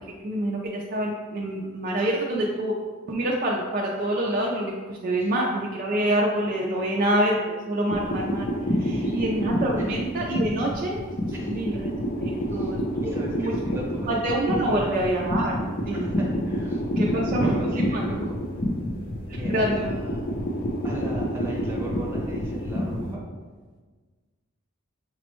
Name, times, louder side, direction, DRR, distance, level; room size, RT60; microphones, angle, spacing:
voice 1, 0.2-2.8 3.1-8.5 8.7-11.0 11.5-13.5 14.1-15.5 15.9-16.1 17.0-18.0 19.3-19.9, right 1 dB, 40° right, -2 dB, 0.3 m, -26 dB
sound 1, 7.9-23.2, equal, 40° left, 0.5 m, -28 dB
voice 2, 8.8-9.2 9.8-9.9 10.5-10.6 11.3-11.6 12.4-12.7 13.0-15.1 15.9-18.4 19.3-20.2 20.8-23.2, right 1 dB, 10° right, -4 dB, 0.7 m, -38 dB
5.9 x 2.0 x 3.0 m, 1.4 s
head